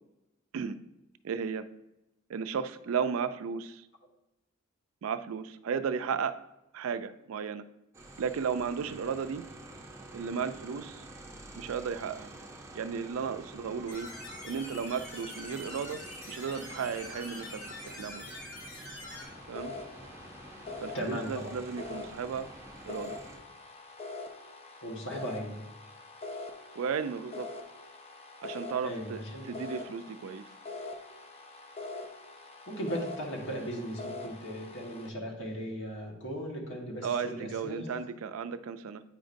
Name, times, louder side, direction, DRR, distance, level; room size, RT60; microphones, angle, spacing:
voice 1, 1.2-1.6 2.3-3.9 5.0-6.4 6.7-7.6 8.2-9.5 10.1-11.0 11.5-12.3 12.7-14.1 14.4-16.0 16.3-18.2 19.5-19.8 20.8-22.5 22.9-23.2 26.8-27.5 28.4-30.4 37.0-39.0, right 6 dB, 75° right, 12 dB, 0.4 m, -34 dB
sound 1, 7.9-23.4, right 2 dB, 15° right, 0.6 m, -48 dB
sound 2, 13.9-19.2, left 2 dB, 85° left, 1.9 m, -45 dB
sound 3, 19.1-35.1, left 3 dB, 30° left, 0.5 m, -44 dB
voice 2, 20.9-21.6 24.8-25.6 28.8-29.5 32.7-37.9, equal, 60° left, -1 dB, 1.4 m, -37 dB
8.8 x 5.0 x 2.6 m, 0.93 s
head